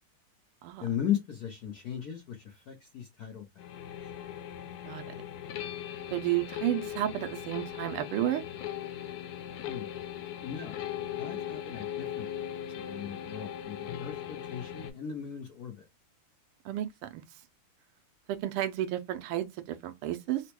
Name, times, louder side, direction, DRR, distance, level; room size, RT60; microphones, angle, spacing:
voice 1, 0.8-3.6 9.6-9.9 10.4-10.8 11.2-12.4 12.7-15.9, left 9 dB, 70° left, 0.9 m, -37 dB
sound 1, 3.6-14.9, left 10 dB, 90° left, 1.6 m, -39 dB
voice 2, 6.1-8.4 16.6-17.2 18.3-20.4, right 13 dB, 90° right, 1.5 m, -32 dB
4.1 x 2.2 x 2.9 m
omnidirectional pair, 2.4 m